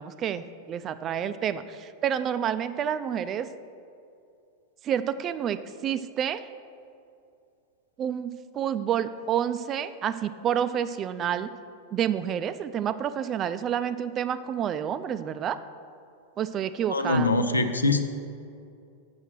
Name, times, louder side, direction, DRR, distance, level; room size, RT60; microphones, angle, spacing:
voice 1, 0.0-3.5 4.8-6.5 8.0-11.5 11.9-15.6 16.4-17.3, right 9 dB, 30° right, 12 dB, 0.4 m, -29 dB
voice 2, 16.9-18.0, left 2 dB, 80° left, 9 dB, 0.6 m, -23 dB
7.9 x 6.3 x 6.1 m, 2.5 s
figure-of-eight pair, 90°, 0 cm